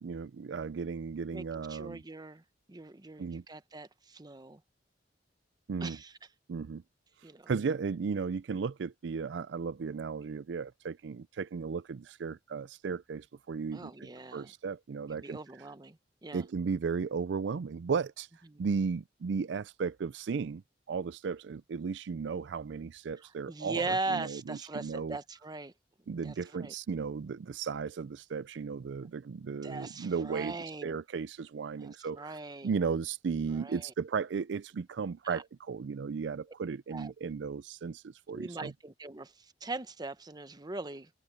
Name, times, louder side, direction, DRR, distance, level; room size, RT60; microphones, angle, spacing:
voice 1, 0.0-2.0 3.2-3.4 5.7-6.0 6.5-6.8 7.5-15.4 16.3-18.3 18.6-20.6 20.9-25.2 26.1-30.6 30.8-32.4 32.6-38.7, right 5 dB, 70° right, 0.4 m, -35 dB
voice 2, 1.7-2.4 2.7-4.6 5.8-6.1 7.2-7.5 13.7-14.5 15.2-16.4 18.5-18.6 23.5-25.7 26.2-26.7 29.6-31.0 31.8-32.7 33.5-33.9 35.2-35.4 36.9-37.1 38.3-41.1, right 3 dB, 25° right, 0.8 m, -40 dB
head